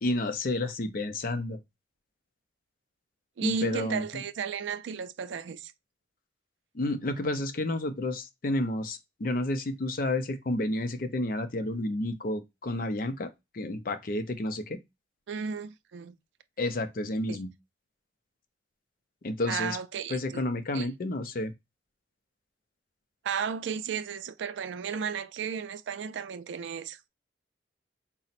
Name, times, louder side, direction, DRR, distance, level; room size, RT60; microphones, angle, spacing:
voice 1, 0.0-1.6 3.4-4.2 6.7-14.8 16.6-17.5 19.2-19.8 20.1-21.5, left 1 dB, 50° left, 0.5 m, -31 dB
voice 2, 3.4-5.7 15.3-16.2 17.3-17.4 19.5-20.4 20.7-20.9 23.2-27.0, right 6 dB, 85° right, 0.3 m, -34 dB
4.0 x 2.0 x 4.1 m
head